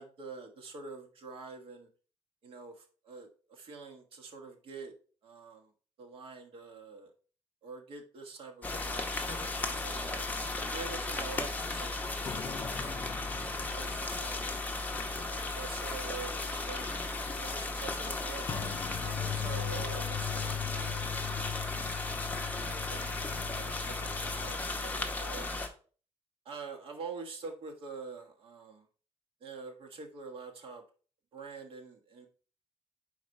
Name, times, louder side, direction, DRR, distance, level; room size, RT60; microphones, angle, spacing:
voice 1, 0.0-1.9 2.4-4.9 5.2-5.7 6.0-7.1 7.6-10.3 10.6-13.1 13.5-14.4 15.0-21.1 22.5-25.7 26.4-28.9 29.4-30.8 31.3-32.3, right 4 dB, 60° right, 2 dB, 1.4 m, -46 dB
sound 1, 8.6-25.7, left 3 dB, 15° left, 0.8 m, -35 dB
sound 2, 12.3-15.4 15.7-15.9 18.5-24.5, left 9 dB, 35° left, 0.4 m, -40 dB
4.6 x 4.6 x 5.3 m, 0.39 s
wide cardioid pair, 170°, 10 cm